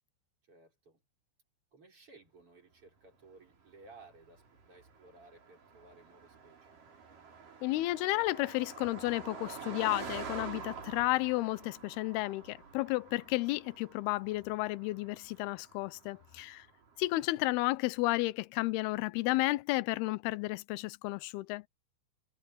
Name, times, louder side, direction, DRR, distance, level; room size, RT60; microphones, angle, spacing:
voice 1, 0.5-1.0 1.7-6.7 16.1-16.5, right 3 dB, 30° right, 6.0 m, -58 dB
Car passing by, 3.5-17.2, right 5 dB, 45° right, 6.0 m, -48 dB
voice 2, 7.6-16.7 17.0-21.6, left 20 dB, 85° left, 2.2 m, -32 dB
omnidirectional pair, 5.4 m